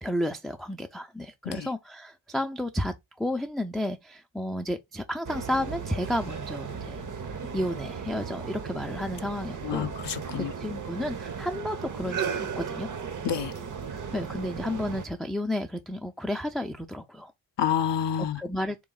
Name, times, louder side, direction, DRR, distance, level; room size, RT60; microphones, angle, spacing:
voice 1, 0.0-9.9 10.3-12.9 13.9-17.3 18.3-18.8, left 1 dB, ahead, 0.4 m, -32 dB
sound 1, 5.3-15.1, right 6 dB, 40° right, 0.7 m, -36 dB
voice 2, 9.6-10.5 13.2-13.5 17.6-18.4, left 9 dB, 60° left, 0.6 m, -28 dB
3.4 x 3.1 x 3.7 m
cardioid pair, 80°, 47 cm